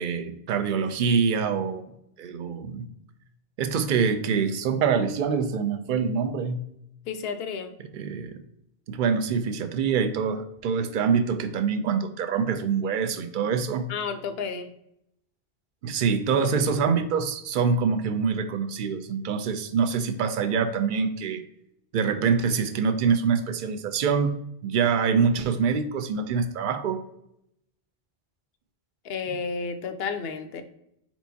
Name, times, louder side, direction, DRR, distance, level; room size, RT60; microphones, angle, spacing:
voice 1, 0.0-1.8 2.2-2.9 3.6-6.6 7.9-8.4 8.9-13.9 15.8-21.4 21.9-24.4 24.6-27.0, right 6 dB, 60° right, 10 dB, 0.6 m, -25 dB
voice 2, 7.1-7.7 13.9-14.7 29.0-30.6, left 5 dB, 70° left, 9 dB, 0.8 m, -31 dB
4.5 x 4.4 x 2.7 m, 0.77 s
omnidirectional pair, 1.1 m